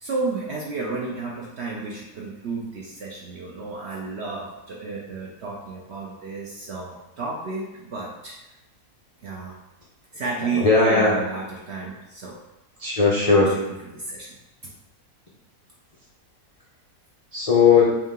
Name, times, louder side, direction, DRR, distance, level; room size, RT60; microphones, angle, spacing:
voice 1, 0.0-8.5 9.2-9.5 10.1-12.3 13.9-14.3, right 3 dB, 65° right, -3 dB, 0.6 m, -32 dB
voice 2, 10.5-11.1 12.8-13.5 17.3-18.0, left 4 dB, 75° left, -6 dB, 0.3 m, -17 dB
3.6 x 2.8 x 3.6 m, 1.0 s
omnidirectional pair, 1.7 m